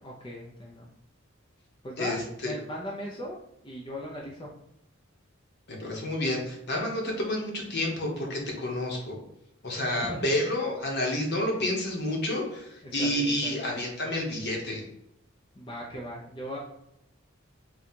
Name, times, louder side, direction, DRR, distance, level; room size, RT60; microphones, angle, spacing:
voice 1, 0.0-0.9 1.8-3.4 3.6-4.5 10.0-10.3 12.8-13.7 15.5-16.6, equal, 25° left, -3 dB, 0.6 m, -38 dB
voice 2, 2.0-2.5 5.7-9.2 9.6-14.8, left 1 dB, 55° left, 0 dB, 1.1 m, -29 dB
3.8 x 2.3 x 4.4 m, 0.81 s
head